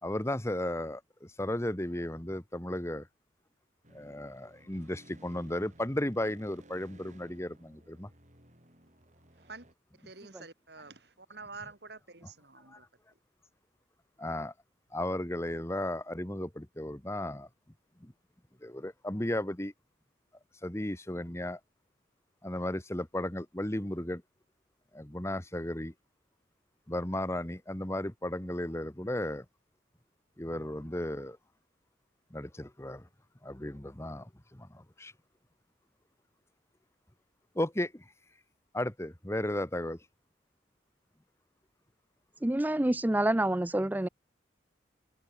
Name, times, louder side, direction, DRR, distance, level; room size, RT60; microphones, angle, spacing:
voice 1, 0.0-3.1 3.9-8.1 12.7-12.8 14.2-14.5 14.9-17.5 18.0-18.1 18.6-19.7 20.6-21.6 22.4-24.2 24.9-25.9 26.9-29.4 30.4-31.4 32.3-33.1 33.4-35.1 37.5-38.0 38.7-40.0, left 1 dB, 15° left, 1.2 m, -35 dB
sound 1, 3.8-9.7, right 1 dB, 40° right, 6.3 m, -58 dB
voice 2, 10.0-12.8 14.2-14.3, right 4 dB, 60° right, 2.9 m, -48 dB
voice 3, 42.4-44.1, right 1 dB, 10° right, 0.4 m, -27 dB
open air
head